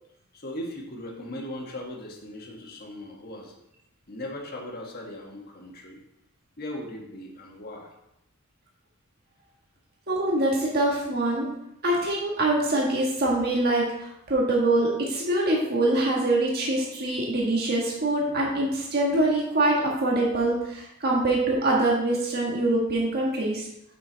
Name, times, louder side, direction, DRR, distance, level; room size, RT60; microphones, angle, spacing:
voice 1, 0.3-3.6 4.1-6.0 6.6-7.9, left 1 dB, 45° left, 0 dB, 1.5 m, -38 dB
voice 2, 10.1-11.5 11.8-23.7, right 2 dB, 50° right, -3 dB, 1.5 m, -24 dB
7.4 x 6.3 x 3.9 m, 0.83 s
head